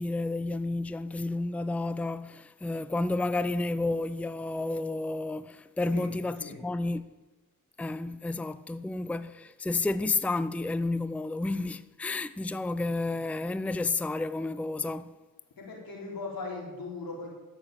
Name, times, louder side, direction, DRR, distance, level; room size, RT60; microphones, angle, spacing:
voice 1, 0.0-7.1 7.8-15.2, left 2 dB, 5° left, 0.5 m, -31 dB
voice 2, 15.6-17.3, left 3 dB, 90° left, 4.0 m, -39 dB
13.0 x 6.9 x 8.9 m
cardioid pair, 65°, 34 cm